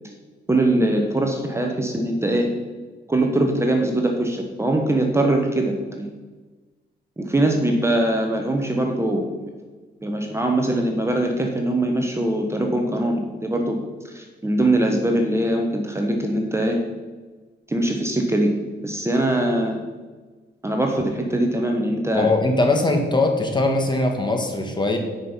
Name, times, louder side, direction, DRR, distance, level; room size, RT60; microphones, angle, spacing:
voice 1, 0.5-2.5 3.1-6.1 7.2-9.5 10.0-13.8 14.1-16.8 17.7-18.5 18.8-19.8 20.6-22.3, right 1 dB, 15° right, 2 dB, 1.0 m, -22 dB
voice 2, 22.1-25.0, left 2 dB, 25° left, 4 dB, 1.5 m, -21 dB
9.4 x 5.4 x 5.6 m, 1.3 s
cardioid pair, 110°, 19 cm